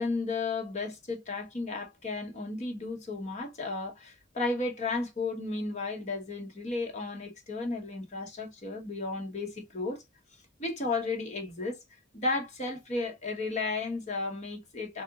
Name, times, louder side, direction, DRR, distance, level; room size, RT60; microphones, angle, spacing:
voice 1, 0.0-10.0 10.6-11.8 12.1-15.0, left 3 dB, 35° left, 1.1 m, -33 dB
3.7 x 2.6 x 2.3 m
head